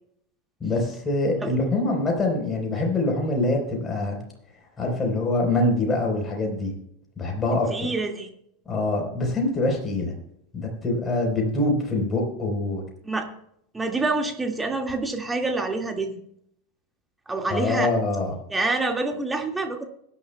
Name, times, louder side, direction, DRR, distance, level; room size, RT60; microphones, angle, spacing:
voice 1, 0.6-4.2 4.8-6.7 7.2-7.7 8.7-10.1 10.5-12.8 17.5-18.3, left 2 dB, 20° left, 1 dB, 4.1 m, -24 dB
voice 2, 7.7-8.3 13.0-13.3 13.7-16.2 17.3-17.9 18.5-19.8, right 3 dB, 10° right, 3 dB, 2.0 m, -27 dB
21.5 x 10.0 x 2.3 m, 0.73 s
figure-of-eight pair, 85°, 0 cm